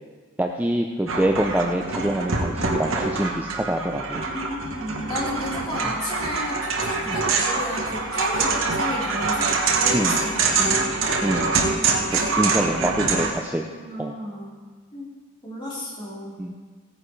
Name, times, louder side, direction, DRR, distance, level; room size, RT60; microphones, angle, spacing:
voice 1, 0.4-4.2 5.8-5.9 7.1-7.2 9.9-10.2 11.2-11.5 12.1-13.7 14.0-14.2 16.4-16.5, right 1 dB, 10° right, 2 dB, 0.5 m, -25 dB
sound 1, 1.1-13.3, right 4 dB, 70° right, 1.3 m, -25 dB
voice 2, 4.1-10.8 12.1-12.3 12.7-13.2 13.5-14.6 14.9-15.1 15.4-16.4, left 1 dB, 25° left, -7 dB, 3.8 m, -33 dB
16.5 x 9.7 x 3.3 m, 1.5 s
head